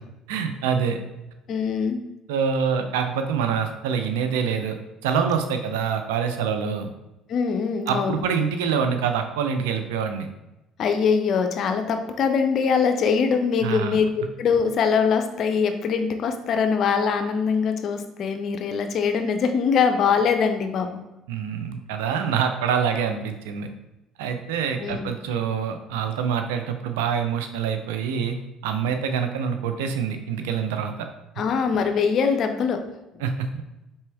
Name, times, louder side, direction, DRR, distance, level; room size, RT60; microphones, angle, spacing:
voice 1, 0.3-1.0 2.3-4.8 5.0-6.9 7.9-10.3 13.6-14.0 21.3-23.7 24.2-28.4 28.6-31.1 33.2-33.6, right 7 dB, 85° right, 6 dB, 0.4 m, -25 dB
voice 2, 1.5-2.0 7.3-8.3 10.8-21.0 24.8-25.1 31.4-32.8, left 6 dB, 55° left, 6 dB, 0.6 m, -23 dB
4.3 x 3.4 x 3.3 m, 0.96 s
supercardioid pair, 70°, 0 cm